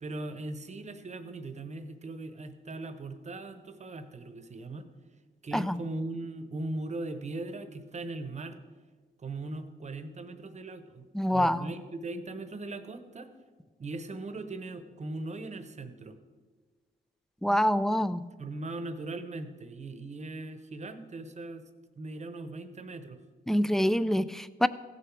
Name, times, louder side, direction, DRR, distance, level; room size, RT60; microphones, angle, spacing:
voice 1, 0.0-4.9 5.4-8.6 9.2-13.3 13.8-16.2 18.4-21.7 22.0-23.2, right 2 dB, 35° right, 10 dB, 0.9 m, -39 dB
voice 2, 11.1-11.7 17.4-18.3 23.5-24.7, equal, ahead, 15 dB, 0.3 m, -26 dB
15.5 x 6.8 x 4.7 m, 1.4 s
cardioid pair, 110°, 20 cm